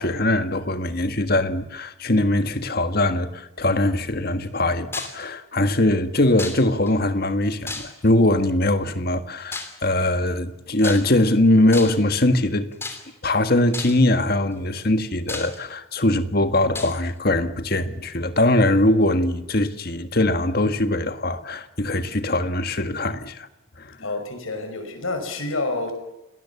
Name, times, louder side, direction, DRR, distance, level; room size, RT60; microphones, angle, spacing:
voice 1, 0.0-12.7 13.2-23.5 23.8-24.0, left 1 dB, 45° left, 1.6 m, -21 dB
sound 1, 4.9-5.2 6.4-6.9 7.7-8.2 9.5-9.8 10.8-11.3 11.7-12.1 12.8-13.3 13.7-14.1 14.8-14.9 15.3-16.0 16.7-17.0, left 3 dB, 10° left, 2.8 m, -33 dB
voice 2, 24.0-25.9, left 2 dB, 80° left, 5.8 m, -28 dB
29.0 x 19.5 x 7.1 m
head